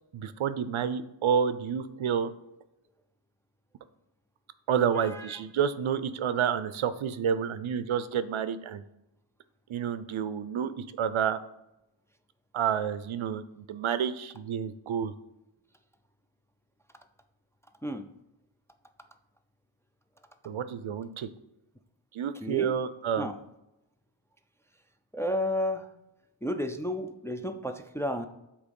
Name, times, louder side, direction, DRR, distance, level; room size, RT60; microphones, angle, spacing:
voice 1, 0.1-2.3 4.7-8.8 9.7-11.4 12.5-15.1 20.4-21.3 22.1-23.3, right 8 dB, 80° right, 13 dB, 0.6 m, -29 dB
voice 2, 5.0-5.4 17.8-18.1 22.4-22.8 23.2-23.3 25.1-25.9 26.4-28.3, left 1 dB, 5° left, 6 dB, 0.4 m, -32 dB
8.2 x 3.0 x 5.3 m, 0.90 s
wide cardioid pair, 80°, 47 cm